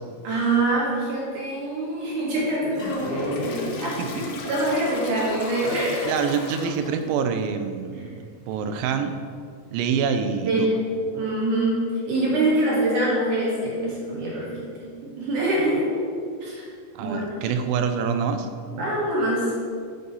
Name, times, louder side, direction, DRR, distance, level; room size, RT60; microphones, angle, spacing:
voice 1, 0.2-4.0 4.4-6.0 10.4-14.5 14.8-15.8 16.4-16.6 17.0-17.3 18.7-19.5, right 1 dB, 65° right, -6 dB, 3.3 m, -24 dB
Toilet flush, 2.7-7.1, left 3 dB, 80° left, 2.5 m, -34 dB
voice 2, 4.0-4.4 6.0-9.2 9.7-10.7 16.9-18.5, right 6 dB, 85° right, 8 dB, 2.3 m, -26 dB
7.9 x 3.9 x 5.4 m, 2.2 s
omnidirectional pair, 4.0 m